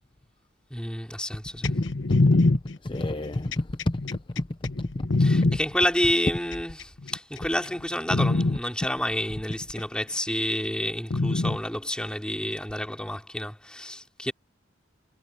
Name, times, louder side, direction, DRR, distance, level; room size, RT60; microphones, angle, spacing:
voice 1, 0.7-1.7 5.2-14.3, left 1 dB, 5° left, 2.7 m, -29 dB
sound 1, 1.6-5.6 6.5-7.2 7.6-7.8 8.1-8.6 9.7-9.8 11.1-11.6 12.7-12.8, left 2 dB, 75° left, 1.0 m, -23 dB
voice 2, 1.6-2.4 2.8-4.5 4.9-5.1 5.4-5.5, left 1 dB, 25° left, 0.6 m, -30 dB
head